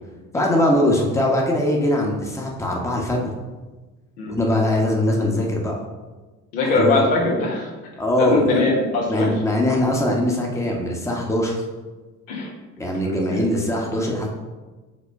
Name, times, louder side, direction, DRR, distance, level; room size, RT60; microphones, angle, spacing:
voice 1, 0.3-3.3 4.3-5.8 6.7-7.0 8.0-8.6 9.1-11.6 12.8-14.3, left 1 dB, 5° left, -1 dB, 1.3 m, -21 dB
voice 2, 6.5-7.7 8.2-9.3 12.3-12.5 13.1-13.4, left 2 dB, 65° left, -2 dB, 1.6 m, -21 dB
5.3 x 4.2 x 5.2 m, 1.3 s
figure-of-eight pair, 50°, 43 cm